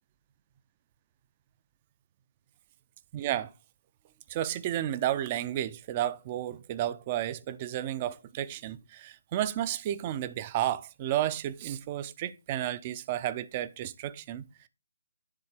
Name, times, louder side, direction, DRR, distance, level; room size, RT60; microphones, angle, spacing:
voice 1, 3.1-3.5 4.3-14.7, right 12 dB, 30° right, 0.5 m, -32 dB
9.8 x 3.9 x 3.5 m
figure-of-eight pair, 150°, 0 cm